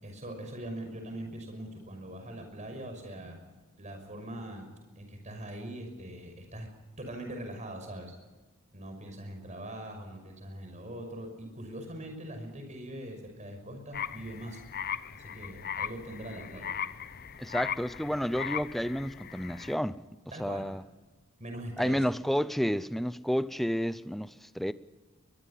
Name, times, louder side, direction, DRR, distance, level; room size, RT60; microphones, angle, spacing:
voice 1, 0.0-3.4 3.8-4.7 5.0-6.7 7.0-8.1 8.7-14.6 15.2-16.8 20.3-20.7 21.4-22.1, right 1 dB, 35° right, 5.8 m, -42 dB
sound 1, 13.9-19.8, left 8 dB, 45° left, 0.7 m, -38 dB
voice 2, 17.4-20.0 20.4-20.8 21.8-24.7, equal, ahead, 0.6 m, -30 dB
22.5 x 22.5 x 5.7 m
head